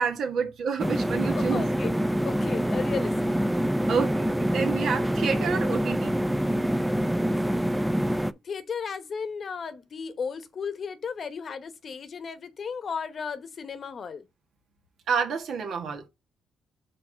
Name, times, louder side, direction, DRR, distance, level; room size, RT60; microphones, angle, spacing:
voice 1, 0.0-1.6 3.9-6.1 15.1-16.1, right 6 dB, 70° right, 1.6 m, -28 dB
sound 1, 0.8-8.3, equal, 5° right, 0.4 m, -26 dB
voice 2, 1.3-1.9 2.2-3.1 8.4-14.2, left 6 dB, 50° left, 0.9 m, -34 dB
4.7 x 4.1 x 5.0 m
cardioid pair, 90°, 0 cm